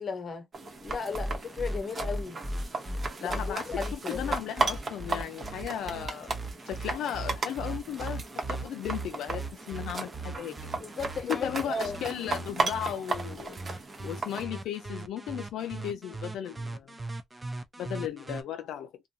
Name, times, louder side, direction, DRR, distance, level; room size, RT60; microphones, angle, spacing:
voice 1, 0.0-2.4 3.2-4.4 10.7-12.0, left 4 dB, 45° left, 0.9 m, -35 dB
sound 1, 0.5-14.4, right 3 dB, 40° right, 0.9 m, -36 dB
sound 2, 0.9-18.4, right 1 dB, 20° right, 0.6 m, -38 dB
voice 2, 3.2-6.3 6.7-10.9 11.2-16.9 17.8-19.0, left 10 dB, 90° left, 0.3 m, -36 dB
2.5 x 2.1 x 2.7 m
cardioid pair, 105°, 0 cm